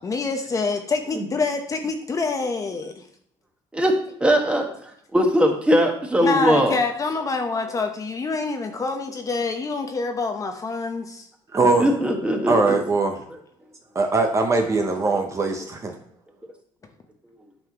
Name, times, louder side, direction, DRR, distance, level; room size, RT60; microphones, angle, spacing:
voice 1, 0.0-3.0 6.2-11.3, left 4 dB, 30° left, 5 dB, 0.8 m, -26 dB
voice 2, 4.2-4.7 5.1-6.7 11.8-12.8 15.1-15.2, equal, 10° right, 2 dB, 1.5 m, -20 dB
voice 3, 11.5-11.9 12.5-13.2 13.9-15.9, right 3 dB, 25° right, 3 dB, 0.8 m, -21 dB
8.8 x 5.7 x 2.9 m, 0.69 s
cardioid pair, 110°, 11 cm